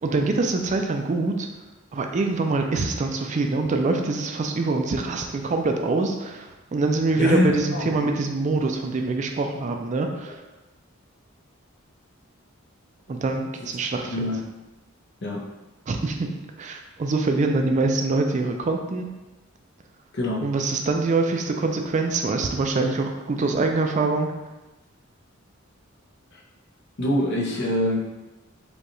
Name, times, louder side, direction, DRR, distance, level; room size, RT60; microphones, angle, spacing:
voice 1, 0.0-1.5 1.9-10.4 13.1-14.3 15.9-16.3 16.6-19.0 20.4-24.3, right 3 dB, 35° right, 4 dB, 0.3 m, -24 dB
voice 2, 7.2-7.9 14.1-14.4 15.2-15.4 20.1-20.5 27.0-28.0, left 1 dB, 55° left, -2 dB, 0.8 m, -24 dB
5.2 x 2.4 x 3.0 m, 1.1 s
head